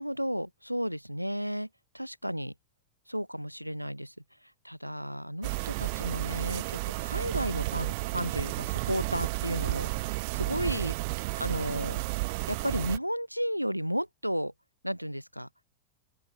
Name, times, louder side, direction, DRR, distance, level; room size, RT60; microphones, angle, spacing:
voice 1, 0.0-1.7 1.9-2.5 3.1-4.1 4.6-10.9 11.4-12.0 12.5-14.5 14.8-15.5, equal, 90° right, 0.9 m, -33 dB
sound 1, 5.4-13.0, right 26 dB, 50° right, 0.5 m, -32 dB
open air
figure-of-eight pair, 90°, 0 cm